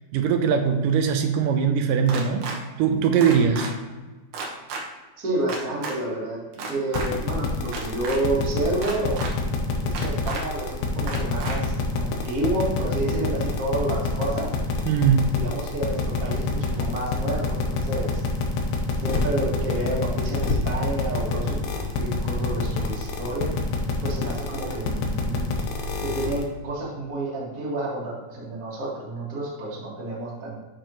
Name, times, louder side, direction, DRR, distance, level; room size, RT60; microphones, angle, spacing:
voice 1, 0.1-2.5 2.8-3.7 14.9-15.2, right 7 dB, 90° right, 5 dB, 2.3 m, -21 dB
sound 1, 2.1-2.6 3.2-3.7 4.3-4.8 5.5-5.9 6.5-7.1 7.7-8.2 8.8-9.3 9.9-10.4 11.1-11.6, right 4 dB, 70° right, 2.3 m, -32 dB
voice 2, 5.2-9.2 9.8-14.5 15.3-18.2 19.0-21.6 21.9-23.5 24.0-25.5 26.0-30.5, right 2 dB, 30° right, -5 dB, 1.8 m, -29 dB
sound 2, 6.9-26.4, left 4 dB, 70° left, 1.7 m, -26 dB
8.4 x 6.2 x 3.1 m, 1.2 s
omnidirectional pair, 3.8 m